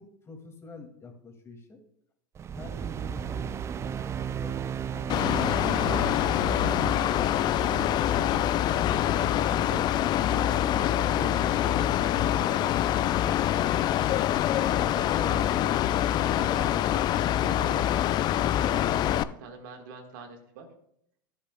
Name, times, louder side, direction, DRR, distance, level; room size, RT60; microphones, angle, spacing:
voice 1, 0.0-1.8 2.5-3.9 4.3-5.8, left 2 dB, 25° left, 3 dB, 2.3 m, -47 dB
sound 1, 2.3-12.8, right 8 dB, 25° right, 0.3 m, -37 dB
Mechanical fan, 5.1-19.2, left 11 dB, 40° left, 0.4 m, -25 dB
voice 2, 8.7-9.9 10.3-14.2 14.5-16.1 16.4-18.2 18.7-20.7, right 5 dB, 70° right, 4 dB, 1.7 m, -44 dB
14.0 x 8.2 x 2.3 m, 0.73 s
hypercardioid pair, 90°, 11 cm